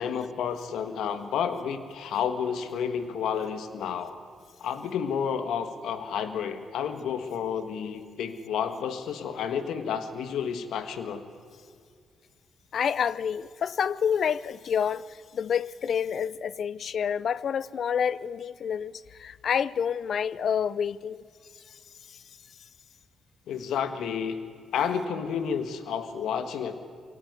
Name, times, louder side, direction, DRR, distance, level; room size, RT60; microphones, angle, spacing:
voice 1, 0.0-4.2 4.6-11.2 23.5-24.4 24.7-26.8, left 7 dB, 85° left, 1.5 m, -30 dB
voice 2, 12.7-15.1 15.3-21.2, left 7 dB, 55° left, 0.6 m, -28 dB
23.0 x 17.5 x 9.5 m
cardioid pair, 110°, 0 cm